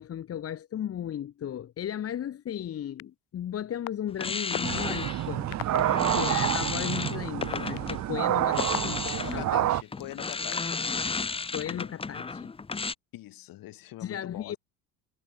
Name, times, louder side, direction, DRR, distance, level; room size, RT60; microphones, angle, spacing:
voice 1, 0.0-5.5 6.1-9.0 9.3-9.6 11.5-12.5 14.0-14.6, left 10 dB, 35° left, 1.7 m, -35 dB
sound 1, 3.0-3.1 3.9-4.0 4.5-4.8 5.5-5.8 6.5-6.6 7.3-9.3 10.0-10.8, left 35 dB, 70° left, 2.2 m, -33 dB
sound 2, 4.1-8.0 8.4-12.9, left 4 dB, 15° left, 1.2 m, -33 dB
sound 3, 4.6-9.8, right 13 dB, 40° right, 1.6 m, -28 dB
voice 2, 9.0-10.8 13.1-14.6, left 16 dB, 55° left, 5.7 m, -42 dB
supercardioid pair, 115°, 41 cm